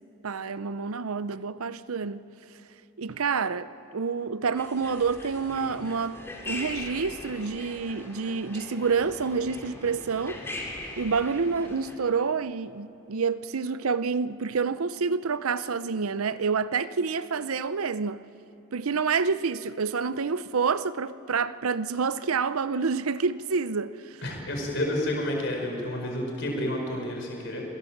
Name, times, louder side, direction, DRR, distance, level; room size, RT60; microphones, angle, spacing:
voice 1, 0.2-2.2 3.0-10.4 11.0-18.3 18.7-24.2, right 5 dB, 85° right, 0.7 m, -28 dB
sound 1, 4.6-12.0, left 1 dB, 10° left, 2.6 m, -40 dB
voice 2, 24.2-27.6, left 1 dB, 55° left, 4.6 m, -30 dB
25.5 x 18.0 x 7.3 m
head